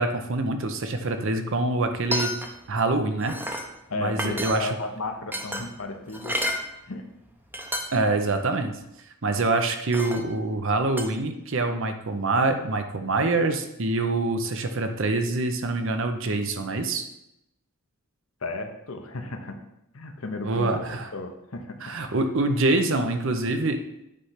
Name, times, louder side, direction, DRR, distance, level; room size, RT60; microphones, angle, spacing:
voice 1, 0.0-2.3 2.7-3.4 4.0-4.7 7.9-8.7 9.2-17.0 20.4-21.1 21.8-23.8, right 2 dB, 60° right, 7 dB, 0.7 m, -25 dB
sound 1, 1.9-2.7 3.0-3.7 4.1-4.9 5.3-6.6 7.3-7.4 7.5-8.1 8.5-8.6 9.9-10.3 11.0-11.1, equal, 10° right, 0.7 m, -30 dB
voice 2, 3.9-6.4 6.9-7.0 18.4-19.6 19.9-20.8 21.1-21.9, left 2 dB, 65° left, 6 dB, 0.9 m, -34 dB
8.5 x 3.3 x 5.7 m, 0.83 s
head